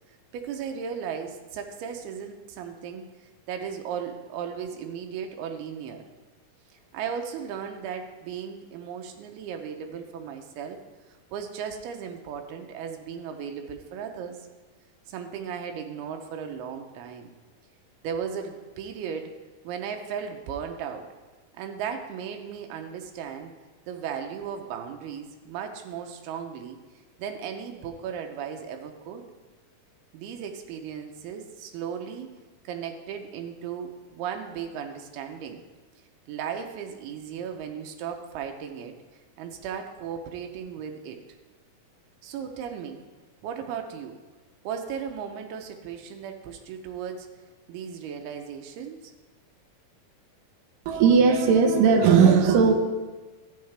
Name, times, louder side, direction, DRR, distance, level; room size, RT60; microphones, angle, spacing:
voice 1, 0.3-3.1 3.5-6.0 6.9-10.8 11.3-14.4 15.1-17.3 18.0-19.3 19.6-21.1 21.6-23.5 23.9-26.8 27.2-29.3 30.1-32.3 32.6-35.6 36.3-39.0 39.4-41.2 42.2-43.0 43.4-44.2 44.6-47.3 47.7-49.1, right 7 dB, 90° right, 4 dB, 2.7 m, -36 dB
voice 2, 50.9-52.7, right 6 dB, 70° right, 5 dB, 2.3 m, -17 dB
13.0 x 7.9 x 3.3 m, 1.3 s
omnidirectional pair, 4.3 m